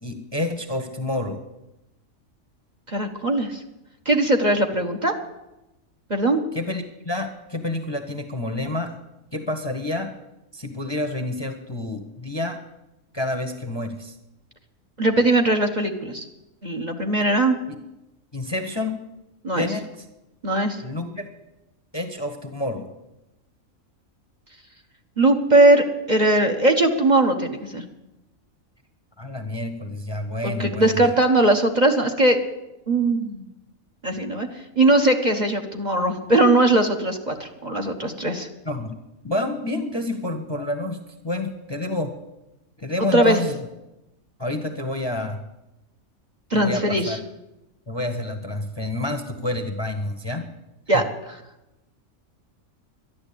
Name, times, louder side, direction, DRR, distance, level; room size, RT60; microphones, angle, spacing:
voice 1, 0.0-1.4 6.5-8.9 9.3-10.1 10.5-12.6 13.1-14.1 18.3-18.9 19.6-20.0 20.8-21.3 21.9-22.9 29.2-31.1 38.6-39.0 39.2-41.0 41.2-42.1 42.8-43.6 44.4-45.4 46.5-47.2 47.9-50.4 50.9-51.0, left 2 dB, 20° left, 6 dB, 1.0 m, -28 dB
voice 2, 2.9-3.6 4.0-5.1 6.1-6.4 15.0-16.2 16.6-17.6 19.4-19.7 20.4-20.8 25.2-27.8 30.4-32.4 32.9-33.5 34.0-34.5 34.8-38.5 43.0-43.4 46.5-47.2 50.9-51.0, right 1 dB, 35° right, 2 dB, 1.3 m, -20 dB
11.5 x 11.5 x 8.5 m, 0.95 s
omnidirectional pair, 1.4 m